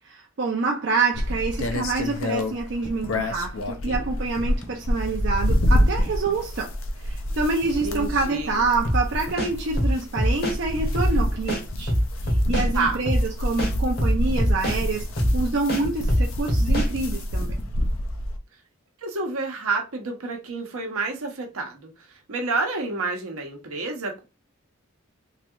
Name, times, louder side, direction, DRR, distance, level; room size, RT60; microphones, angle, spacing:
voice 1, 0.0-6.7 7.0-11.9 12.2-15.1 15.3-17.5, right 3 dB, 55° right, 0.5 m, -27 dB
sound 1, 1.1-18.4, left 1 dB, 65° left, 0.5 m, -27 dB
sound 2, 2.8-3.2 4.1-4.8 6.0-6.5 7.6-8.0 9.3-9.6 11.0-11.4 12.6-13.1 14.3-14.7 15.8-16.2 17.4-17.8, left 1 dB, 10° left, 0.4 m, -42 dB
voice 2, 7.8-8.6 12.7-13.0 19.0-24.2, right 3 dB, 80° right, 0.9 m, -29 dB
sound 3, 8.8-9.0 9.4-10.6 10.9-11.1 11.5-12.7 13.1-13.2 13.6-14.8 15.2-15.3 15.7-16.9, equal, 45° left, 1.0 m, -23 dB
3.2 x 2.7 x 2.4 m
head